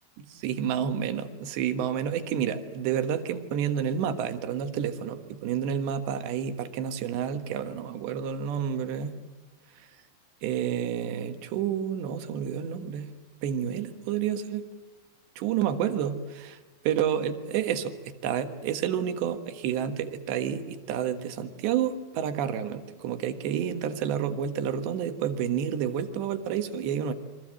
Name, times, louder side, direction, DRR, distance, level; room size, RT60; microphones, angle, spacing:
voice 1, 0.4-9.1 10.4-13.1 13.4-14.7 15.4-16.6 16.8-27.1, right 8 dB, 75° right, 9 dB, 3.6 m, -29 dB
28.5 x 25.0 x 7.6 m, 1.2 s
omnidirectional pair, 5.2 m